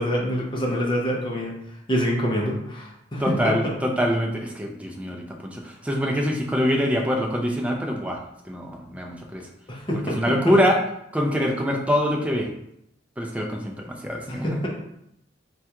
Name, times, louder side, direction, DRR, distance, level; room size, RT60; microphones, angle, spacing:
voice 1, 0.0-1.5 1.9-3.5 9.7-10.6 14.3-14.7, equal, 25° left, -2 dB, 0.7 m, -26 dB
voice 2, 3.2-8.2 8.5-9.5 10.2-10.8 11.1-12.5 13.2-14.7, equal, 5° right, 1 dB, 0.4 m, -24 dB
3.4 x 2.3 x 2.9 m, 0.77 s
head